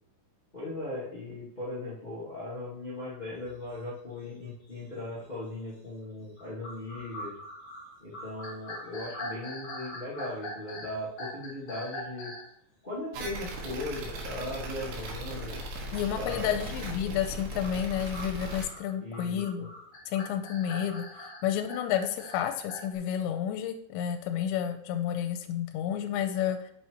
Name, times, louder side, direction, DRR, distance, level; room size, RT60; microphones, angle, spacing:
voice 1, 0.5-7.3 8.0-12.3 12.8-15.6 16.2-16.7 19.0-19.7, left 1 dB, 70° left, -10 dB, 0.4 m, -38 dB
sound 1, 3.4-3.6 4.2-4.3 4.9-5.2 6.4-12.5 17.4-23.0, left 1 dB, 30° left, 2.5 m, -42 dB
sound 2, 13.1-18.7, equal, 80° right, 3.7 m, -38 dB
voice 2, 15.9-19.7 20.1-21.1 21.4-26.7, left 9 dB, 85° left, 5 dB, 2.9 m, -30 dB
8.0 x 5.7 x 3.0 m, 0.66 s
omnidirectional pair, 5.2 m